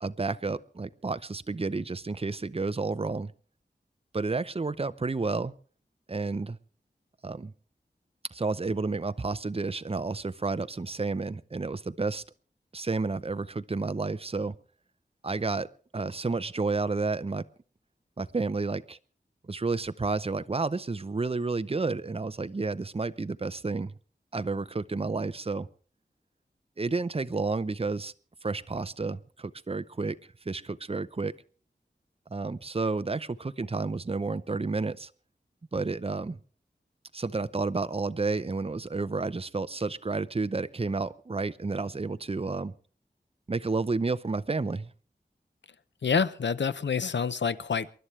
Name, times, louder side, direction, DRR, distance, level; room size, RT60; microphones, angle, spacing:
voice 1, 0.0-3.3 4.1-5.5 6.1-6.6 7.2-7.5 8.3-12.2 12.7-14.6 15.2-17.4 18.2-19.0 19.4-23.9 24.3-25.7 26.8-28.1 28.4-30.2 30.5-31.3 32.3-35.1 35.7-36.4 37.1-42.7 43.5-44.9, right 3 dB, 35° right, 13 dB, 0.7 m, -31 dB
voice 2, 46.0-47.9, left 6 dB, 90° left, 15 dB, 0.7 m, -27 dB
28.0 x 11.5 x 3.3 m, 0.42 s
wide cardioid pair, 70°, 18 cm